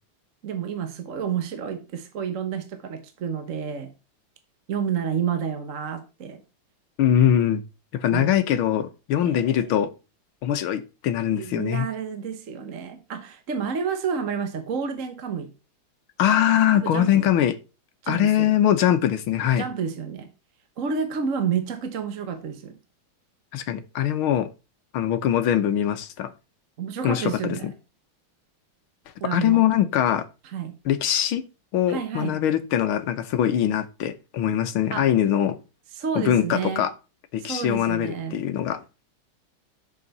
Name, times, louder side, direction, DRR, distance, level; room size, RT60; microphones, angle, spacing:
voice 1, 0.4-3.9 4.7-6.4 8.1-8.3 9.2-9.7 11.3-15.5 16.7-17.3 18.0-18.6 19.6-20.3 20.8-22.7 26.8-27.7 29.2-29.7 30.4-30.8 31.9-32.4 34.9-35.1 35.9-36.8 37.4-38.4, right 7 dB, 45° right, 1.1 m, -30 dB
voice 2, 7.0-7.6 7.9-9.9 10.4-11.9 16.2-17.6 18.1-19.6 23.5-24.5 24.9-26.3 27.0-27.7 29.3-30.3 30.9-31.4 31.7-35.6 36.2-36.9 37.3-38.8, left 10 dB, 75° left, 1.8 m, -22 dB
10.5 x 6.9 x 4.1 m
omnidirectional pair, 2.3 m